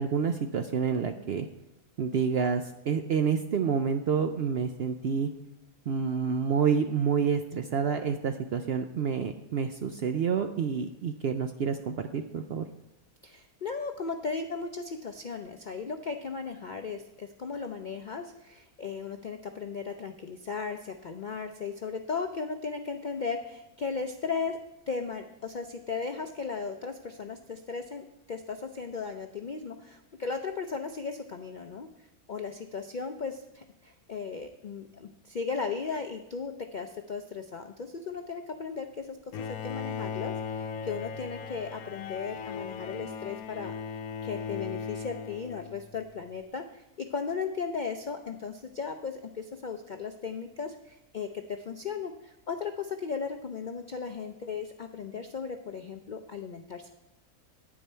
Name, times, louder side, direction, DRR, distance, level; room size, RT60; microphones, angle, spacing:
voice 1, 0.0-1.5 2.0-5.3 5.9-12.7, right 6 dB, 65° right, 7 dB, 0.6 m, -28 dB
voice 2, 13.2-24.6 24.9-31.9 32.3-43.7 44.2-56.9, left 5 dB, 60° left, 5 dB, 0.5 m, -36 dB
Bowed string instrument, 39.3-46.1, left 6 dB, 85° left, 1.1 m, -38 dB
9.9 x 9.0 x 4.4 m, 0.93 s
omnidirectional pair, 1.5 m